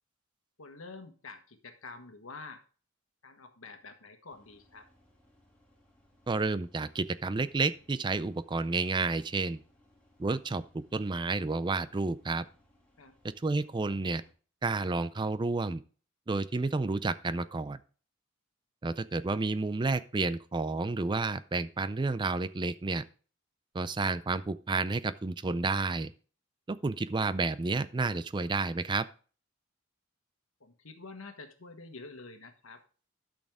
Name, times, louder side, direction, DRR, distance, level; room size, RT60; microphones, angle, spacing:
voice 1, 0.6-2.6 3.2-4.9 13.0-13.2 30.6-32.8, left 3 dB, 85° left, 7 dB, 1.5 m, -48 dB
sound 1, 4.3-14.3, left 1 dB, 5° left, 2.6 m, -66 dB
voice 2, 6.3-9.6 10.2-12.4 13.2-14.2 14.6-15.8 16.3-17.8 18.8-23.0 23.7-26.1 26.7-29.1, right 3 dB, 20° right, 15 dB, 0.4 m, -30 dB
12.0 x 6.3 x 3.6 m, 0.38 s
head